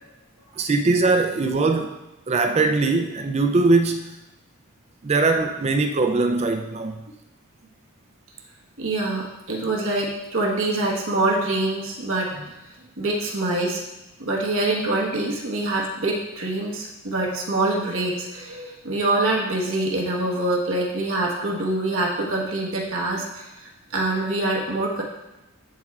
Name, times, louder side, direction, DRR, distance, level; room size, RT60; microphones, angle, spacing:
voice 1, 0.6-1.9 2.3-4.2 5.0-7.0, right 3 dB, 30° right, 5 dB, 0.4 m, -21 dB
voice 2, 8.8-12.5 13.0-13.8 14.2-25.0, right 2 dB, 60° right, -1 dB, 1.3 m, -25 dB
13.0 x 4.4 x 2.4 m, 0.99 s
head